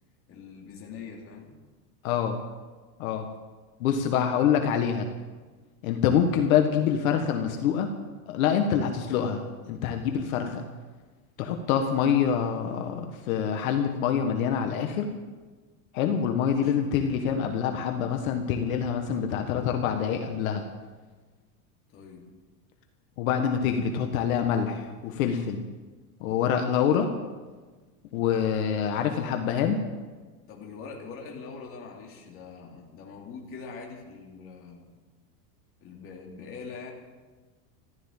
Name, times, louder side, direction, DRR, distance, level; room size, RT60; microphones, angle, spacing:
voice 1, 0.3-1.5 16.5-16.8 21.9-22.3 30.5-34.9 35.8-36.9, left 5 dB, 30° left, -1 dB, 2.9 m, -43 dB
voice 2, 2.0-2.4 3.0-3.3 3.8-5.1 5.8-7.9 8.3-10.6 11.4-15.1 15.9-20.6 23.2-25.6 26.2-27.1 28.1-29.8, left 8 dB, 65° left, 5 dB, 1.6 m, -26 dB
15.0 x 12.5 x 7.3 m, 1.3 s
supercardioid pair, 170°, 44 cm